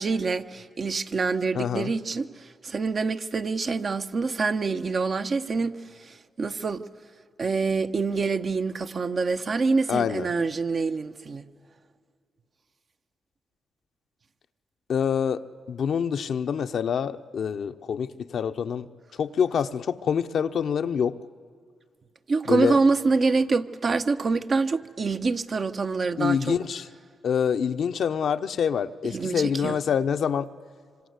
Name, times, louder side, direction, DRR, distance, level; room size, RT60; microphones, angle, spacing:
voice 1, 0.0-2.3 2.6-6.8 7.4-11.4 22.3-26.6 29.1-29.8, right 4 dB, 50° right, 1.1 m, -26 dB
voice 2, 1.5-1.9 9.9-10.3 14.9-15.4 15.7-18.9 19.2-21.1 22.5-22.8 26.2-26.9 27.2-30.5, left 7 dB, 70° left, 0.9 m, -26 dB
26.5 x 25.5 x 8.1 m
cardioid pair, 60°, 0 cm